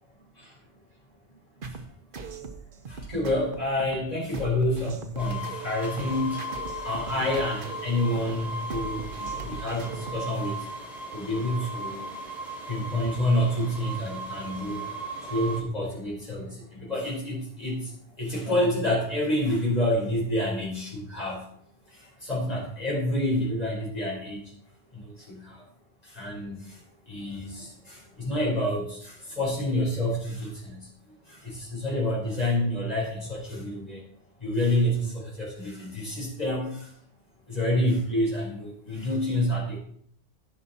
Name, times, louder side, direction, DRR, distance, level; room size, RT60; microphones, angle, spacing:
sound 1, 1.6-10.3, right 5 dB, 50° right, 1.1 m, -40 dB
voice 1, 2.9-6.4 6.8-10.6 11.1-12.1 12.7-14.8 15.3-17.9 18.2-21.4 22.2-24.4 24.9-25.6 26.1-26.8 27.1-30.9 31.3-34.0 34.4-36.9 37.5-39.8, left 1 dB, 35° left, -4 dB, 4.9 m, -28 dB
sound 2, 5.2-15.6, right 1 dB, ahead, 3.4 m, -37 dB
16.0 x 5.6 x 4.3 m, 0.63 s
omnidirectional pair, 1.2 m